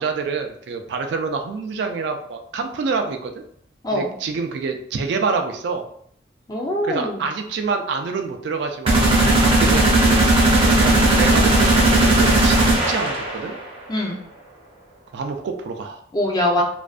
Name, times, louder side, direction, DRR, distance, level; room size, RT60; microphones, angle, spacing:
voice 1, 0.0-3.4 3.9-5.9 6.8-10.3 10.7-13.6 15.1-16.0, right 4 dB, 65° right, 6 dB, 0.3 m, -27 dB
voice 2, 6.5-7.2 13.9-14.2 16.1-16.6, left 1 dB, 20° left, -1 dB, 0.4 m, -22 dB
sound 1, 8.9-13.6, right 2 dB, 30° right, 0.6 m, -16 dB
2.5 x 2.2 x 2.3 m, 0.67 s
head